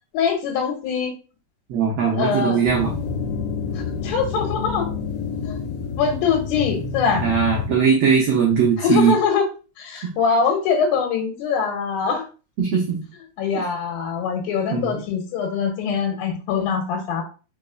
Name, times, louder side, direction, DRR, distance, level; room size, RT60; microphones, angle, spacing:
voice 1, 0.1-1.1 2.1-2.6 4.0-4.9 5.5-5.6 6.0-7.2 8.8-9.4 9.8-12.2 13.4-17.2, left 6 dB, 90° left, 3 dB, 2.8 m, -23 dB
voice 2, 1.7-2.9 7.2-9.1 12.6-13.0 14.7-15.0, right 6 dB, 90° right, -2 dB, 1.4 m, -19 dB
sound 1, 2.7-7.7, left 5 dB, 70° left, 2.1 m, -28 dB
5.2 x 4.0 x 2.3 m, 0.33 s
omnidirectional pair, 4.1 m